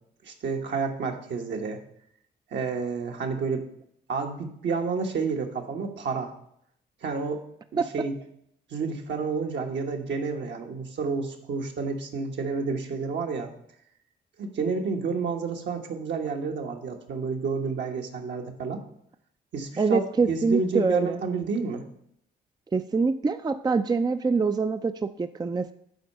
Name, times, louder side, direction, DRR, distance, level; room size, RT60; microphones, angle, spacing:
voice 1, 0.2-1.8 2.5-3.6 4.1-6.3 7.0-7.4 7.7-8.1 8.7-13.5 14.4-18.8 19.5-20.0 20.3-21.8, right 4 dB, 65° right, 2 dB, 1.3 m, -30 dB
voice 2, 19.8-21.2 22.7-25.7, right 4 dB, 20° right, 9 dB, 0.4 m, -25 dB
8.0 x 4.5 x 6.6 m, 0.72 s
supercardioid pair, 50°, 20 cm